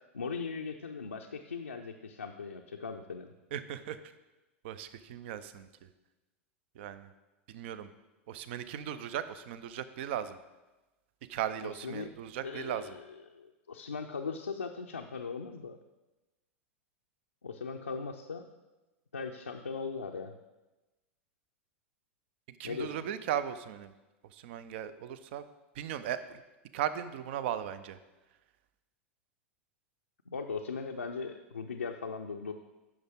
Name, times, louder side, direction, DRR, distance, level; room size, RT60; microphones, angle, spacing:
voice 1, 0.0-3.3 11.7-12.1 12.4-15.8 17.4-18.5 19.1-20.3 22.6-23.0 30.3-32.5, left 5 dB, 85° left, 2 dB, 0.5 m, -39 dB
voice 2, 3.5-4.0 4.6-5.9 6.8-7.1 7.5-7.9 8.3-10.4 11.3-12.9 22.6-23.9 24.3-25.4 25.8-26.4 26.7-28.0, right 10 dB, 55° right, 13 dB, 0.5 m, -37 dB
10.0 x 6.0 x 3.6 m, 1.1 s
figure-of-eight pair, 90°, 7 cm